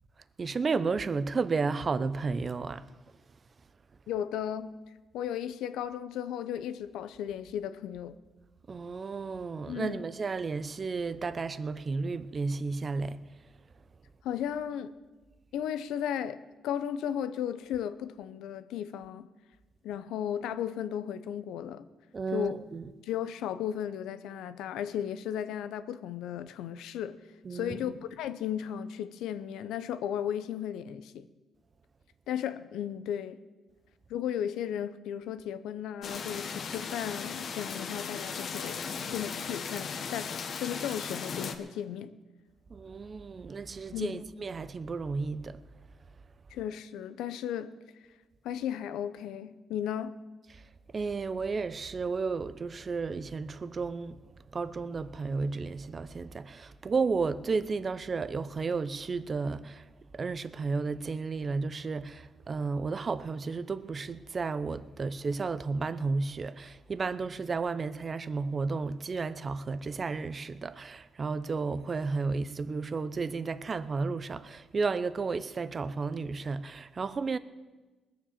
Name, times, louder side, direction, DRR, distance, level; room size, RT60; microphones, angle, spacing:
voice 1, 0.4-2.9 8.7-13.2 22.1-22.9 27.4-27.9 42.7-45.6 50.5-50.6 50.9-54.2 54.5-59.8 60.1-77.4, right 4 dB, 40° right, 0.7 m, -33 dB
voice 2, 4.1-4.7 5.1-8.2 9.6-10.1 14.2-14.9 15.5-16.4 16.6-19.3 19.8-21.9 22.3-22.6 23.0-27.2 27.5-31.3 32.3-33.4 34.1-38.8 39.1-42.1 43.9-44.2 46.5-47.7 48.4-50.2, left 9 dB, 85° left, 0.7 m, -35 dB
sound 1, 36.0-41.5, left 6 dB, 55° left, 1.2 m, -37 dB
19.5 x 7.4 x 7.2 m
cardioid pair, 90°, 0 cm